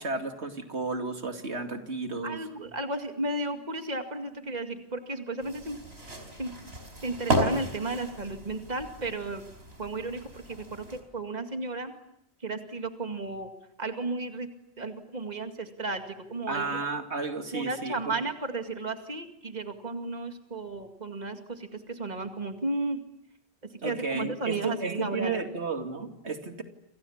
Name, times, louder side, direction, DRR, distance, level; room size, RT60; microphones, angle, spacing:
voice 1, 0.0-2.4 16.5-18.2 23.8-26.6, right 4 dB, 90° right, 5 dB, 2.9 m, -33 dB
voice 2, 2.2-6.5 7.0-9.4 9.8-11.9 12.4-13.5 13.8-16.8 17.5-23.0 23.8-25.4, right 2 dB, 40° right, 6 dB, 2.3 m, -34 dB
sound 1, 5.4-11.0, right 1 dB, 70° right, 5.3 m, -34 dB
28.5 x 28.0 x 7.3 m, 0.76 s
omnidirectional pair, 1.1 m